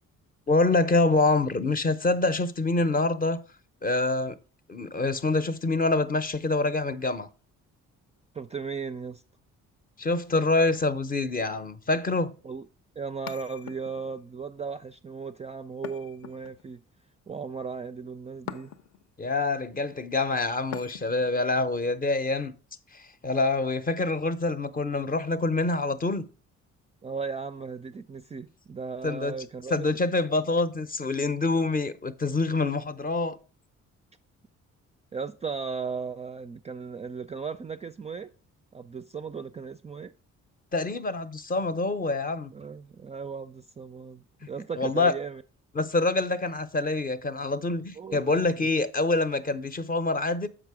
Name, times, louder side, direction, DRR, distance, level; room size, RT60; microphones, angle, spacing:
voice 1, 0.5-3.4 3.8-4.4 4.7-7.3 10.0-12.3 19.2-22.5 22.9-26.3 29.0-29.3 29.7-33.4 40.7-42.5 44.8-45.1 45.7-50.5, left 3 dB, 30° left, 0.6 m, -26 dB
voice 2, 8.3-9.2 12.4-12.7 13.0-16.8 17.3-18.7 27.0-29.9 35.1-38.3 38.7-40.1 42.5-45.4 48.0-48.7, right 5 dB, 25° right, 0.3 m, -36 dB
sound 1, 13.3-14.2 15.8-16.8 18.5-19.1 20.7-21.3, left 9 dB, 65° left, 0.7 m, -42 dB
6.8 x 5.0 x 4.8 m
cardioid pair, 90°, 30 cm